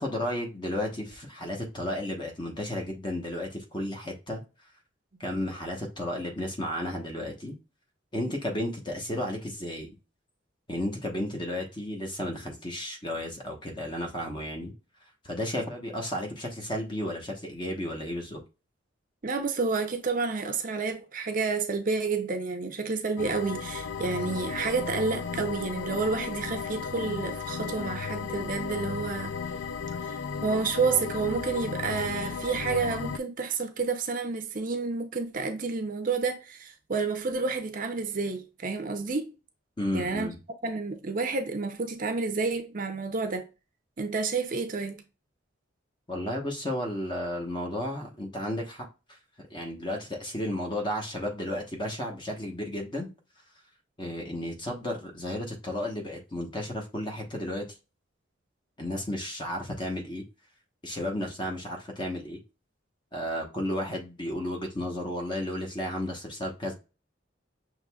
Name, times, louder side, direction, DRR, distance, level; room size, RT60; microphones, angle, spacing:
voice 1, 0.0-4.4 5.2-7.5 8.1-9.9 10.7-14.7 15.2-18.4 39.8-40.3 46.1-48.9 49.4-53.1 54.0-57.6 58.8-60.2 60.8-62.4 63.1-66.7, left 1 dB, 25° left, 1.0 m, -33 dB
voice 2, 19.2-29.4 30.0-39.3 39.9-40.3 40.6-43.5 44.0-45.0, right 4 dB, 45° right, 0.6 m, -30 dB
sound 1, 23.2-33.2, left 6 dB, 65° left, 0.3 m, -35 dB
6.2 x 3.0 x 2.3 m
head